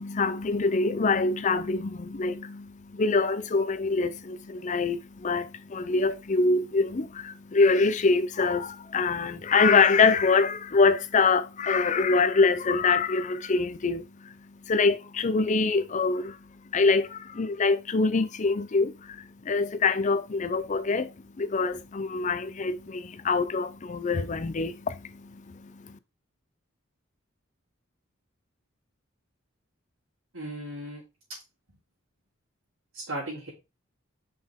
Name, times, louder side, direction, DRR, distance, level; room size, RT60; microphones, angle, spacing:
voice 1, 0.0-14.3 14.7-16.4 16.7-26.0, left 4 dB, 35° left, 0.5 m, -25 dB
voice 2, 30.3-31.0 32.9-33.5, right 1 dB, 90° right, 3.4 m, -36 dB
5.5 x 5.4 x 3.6 m
head